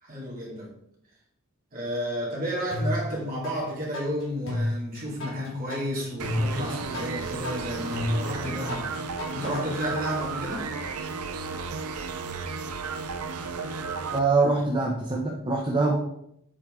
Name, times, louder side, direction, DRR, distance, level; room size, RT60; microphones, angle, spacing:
voice 1, 0.0-0.7 1.7-10.7, equal, 40° right, -5 dB, 2.6 m, -32 dB
sound 1, 2.7-3.5 3.9-9.6, left 1 dB, 60° left, 2.8 m, -31 dB
sound 2, 6.2-14.2, right 4 dB, 80° right, 0.6 m, -33 dB
voice 2, 14.1-16.0, right 3 dB, 20° right, -1 dB, 0.7 m, -24 dB
7.4 x 4.3 x 3.7 m, 0.74 s
head